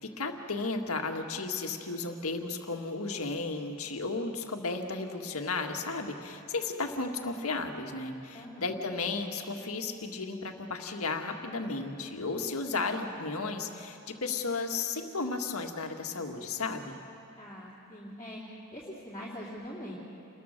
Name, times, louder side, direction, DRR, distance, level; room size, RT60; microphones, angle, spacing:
voice 1, 0.0-17.0, left 3 dB, 70° left, 3 dB, 1.9 m, -34 dB
voice 2, 8.3-8.8 17.4-18.4 18.7-19.9, equal, 20° left, -7 dB, 2.9 m, -43 dB
28.5 x 21.0 x 6.7 m, 2.8 s
head